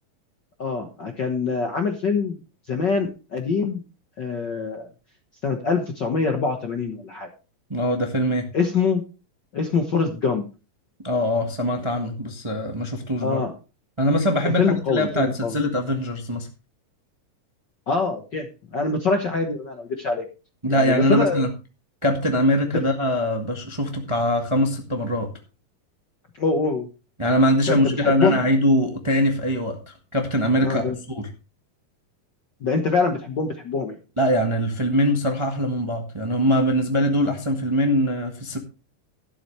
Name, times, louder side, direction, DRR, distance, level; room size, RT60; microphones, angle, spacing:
voice 1, 0.6-2.4 2.7-3.8 4.2-4.9 5.4-7.3 8.5-9.0 9.5-10.4 13.2-13.5 14.6-15.5 17.9-18.5 18.7-20.2 20.7-21.4 22.7-22.8 26.4-26.9 27.6-28.4 30.6-31.0 32.6-34.0, left 4 dB, 60° left, 4 dB, 1.2 m, -24 dB
voice 2, 7.7-8.5 11.0-13.4 14.0-16.5 20.6-21.5 22.0-25.3 27.2-30.8 31.1-31.3 34.2-38.6, equal, 40° right, 3 dB, 0.4 m, -22 dB
12.5 x 11.0 x 3.2 m, 0.32 s
omnidirectional pair, 3.8 m